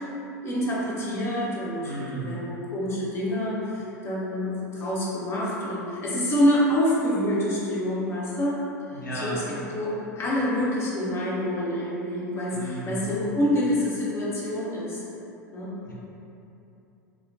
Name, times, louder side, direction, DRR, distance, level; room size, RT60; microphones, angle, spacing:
voice 1, 0.4-1.9 2.3-8.6 9.1-9.4 9.7-15.0 15.5-15.7, equal, 25° left, -7 dB, 0.7 m, -26 dB
voice 2, 1.8-2.4 8.9-9.6 12.5-13.1 15.8-15.9, right 2 dB, 85° left, -6 dB, 0.5 m, -34 dB
3.0 x 2.1 x 2.6 m, 2.9 s
figure-of-eight pair, 85°, 10 cm